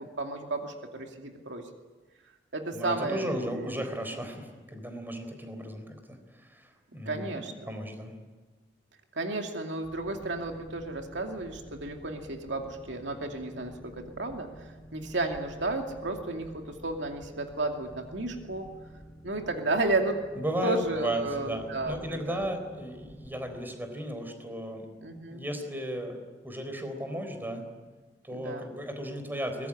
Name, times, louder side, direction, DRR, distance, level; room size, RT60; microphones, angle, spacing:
voice 1, 0.0-1.7 2.5-3.7 7.1-7.5 9.1-14.5 14.9-18.7 19.2-20.2 20.6-22.5 25.0-25.4 28.3-28.6, right 2 dB, 75° right, 3 dB, 2.5 m, -32 dB
voice 2, 2.7-8.1 20.4-24.9 25.3-27.6 28.2-29.7, equal, 10° right, 6 dB, 4.0 m, -35 dB
Boat Water vehicle, 9.8-23.6, equal, 10° left, 2.3 m, -50 dB
23.0 x 20.5 x 10.0 m, 1.3 s
head